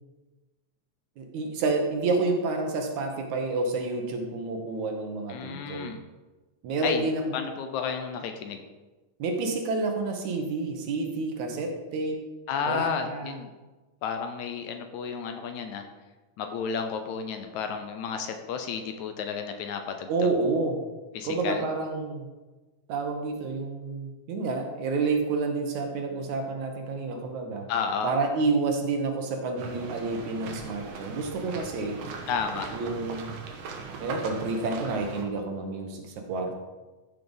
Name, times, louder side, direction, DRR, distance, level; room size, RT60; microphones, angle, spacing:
voice 1, 1.2-5.9 6.6-7.2 9.2-12.2 12.7-13.4 20.1-20.8 21.2-22.3 22.9-27.7 28.0-32.0 32.7-33.3 34.0-36.6, right 3 dB, 70° right, 3 dB, 2.4 m, -29 dB
voice 2, 5.3-6.0 6.8-8.6 12.5-13.5 14.0-15.9 16.4-20.3 21.1-21.7 27.7-28.1 32.3-32.7, left 6 dB, 75° left, 6 dB, 2.1 m, -32 dB
sound 1, 29.6-35.2, right 4 dB, 85° right, 2.8 m, -39 dB
14.0 x 6.7 x 3.9 m, 1.2 s
omnidirectional pair, 3.6 m